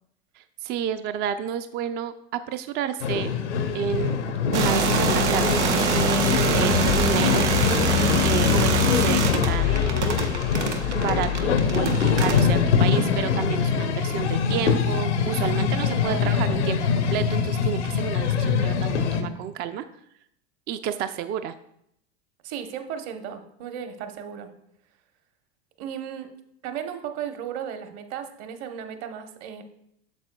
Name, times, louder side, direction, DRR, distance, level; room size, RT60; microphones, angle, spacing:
voice 1, 0.4-3.3 3.7-4.1 4.5-7.8 8.2-9.9 10.9-11.9 12.2-19.9 20.7-21.5, right 9 dB, 30° right, 10 dB, 0.4 m, -30 dB
sound 1, 3.0-19.2, left 6 dB, 85° left, 0.9 m, -24 dB
sound 2, 4.5-12.6, right 3 dB, 90° right, 0.8 m, -24 dB
sound 3, 6.2-12.8, left 11 dB, 60° left, 0.5 m, -27 dB
voice 2, 15.8-16.4 22.4-24.5 25.8-29.6, right 8 dB, 50° right, 7 dB, 1.0 m, -35 dB
8.2 x 6.9 x 2.2 m, 0.75 s
hypercardioid pair, 90°, 34 cm